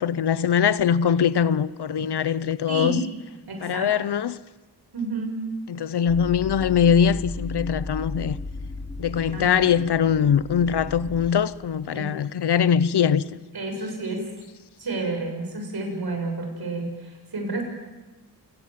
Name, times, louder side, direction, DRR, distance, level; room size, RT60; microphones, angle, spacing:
voice 1, 0.0-3.0 3.6-4.4 5.7-8.4 9.0-13.2, left 8 dB, 75° left, 0.9 m, -22 dB
voice 2, 2.7-3.0 3.5-3.9 4.9-5.4 9.3-9.7 11.9-12.1 13.5-14.2 14.8-17.6, right 2 dB, 65° right, 7.2 m, -30 dB
sound 1, 6.1-11.3, left 2 dB, 10° left, 5.5 m, -35 dB
28.5 x 20.0 x 7.7 m
cardioid pair, 75°, 40 cm